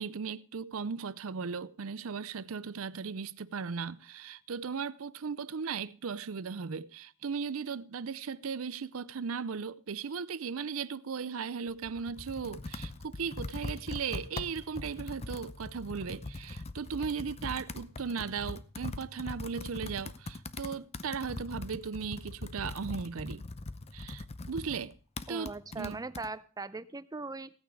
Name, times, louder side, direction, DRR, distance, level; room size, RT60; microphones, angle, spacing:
voice 1, 0.0-23.4 23.9-24.9 25.3-26.0, right 6 dB, 75° right, 0.6 m, -37 dB
Computer keyboard, 11.7-26.3, left 2 dB, 30° left, 0.7 m, -42 dB
voice 2, 25.3-27.5, right 3 dB, 15° right, 0.6 m, -40 dB
16.0 x 9.3 x 4.8 m
head